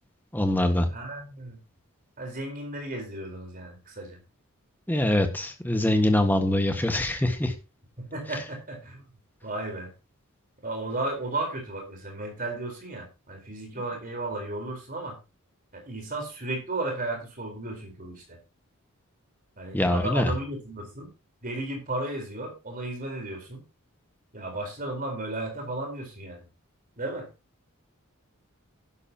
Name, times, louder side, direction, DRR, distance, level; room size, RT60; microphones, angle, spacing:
voice 1, 0.3-0.9 4.9-7.5 19.7-20.3, left 1 dB, 10° left, 6 dB, 1.6 m, -24 dB
voice 2, 0.9-1.6 2.2-4.2 8.0-9.0 9.4-9.9 10.6-15.2 15.7-18.4 19.6-21.1 21.4-23.6 24.3-26.4 27.0-27.3, right 2 dB, 40° right, 2 dB, 4.3 m, -34 dB
11.5 x 11.5 x 2.9 m, 0.28 s
head